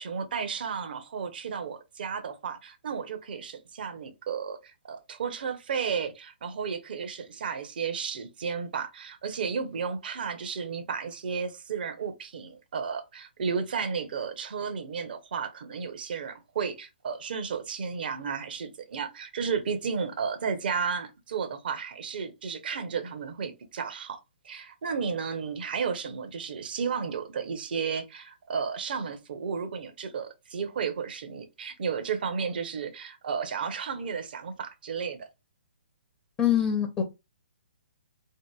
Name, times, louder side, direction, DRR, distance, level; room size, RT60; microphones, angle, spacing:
voice 1, 0.0-24.2 24.4-35.3, right 6 dB, 55° right, 0.6 m, -33 dB
voice 2, 36.4-37.0, left 10 dB, 15° left, 0.5 m, -24 dB
2.7 x 2.6 x 2.2 m
figure-of-eight pair, 135°, 6 cm